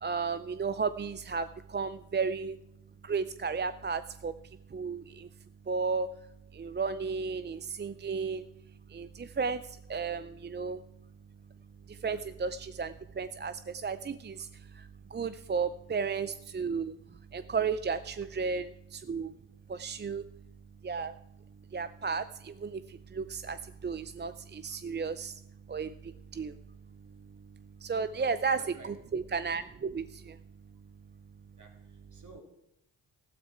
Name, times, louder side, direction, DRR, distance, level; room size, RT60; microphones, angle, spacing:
voice 1, 0.0-1.5 1.7-2.6 3.0-4.3 4.7-5.3 5.7-6.1 6.6-8.4 8.9-9.6 9.9-10.8 12.0-13.5 13.8-14.4 15.1-16.9 17.3-19.3 19.7-20.2 20.8-21.1 21.7-22.8 23.1-23.6 23.8-25.3 25.7-25.9 26.3-26.5 27.8-30.3, right 5 dB, 25° right, 13 dB, 0.5 m, -33 dB
voice 2, 28.1-28.9 31.6-32.4, right 3 dB, 40° right, 1 dB, 3.5 m, -53 dB
13.5 x 12.5 x 4.4 m, 0.84 s
supercardioid pair, 45°, 46 cm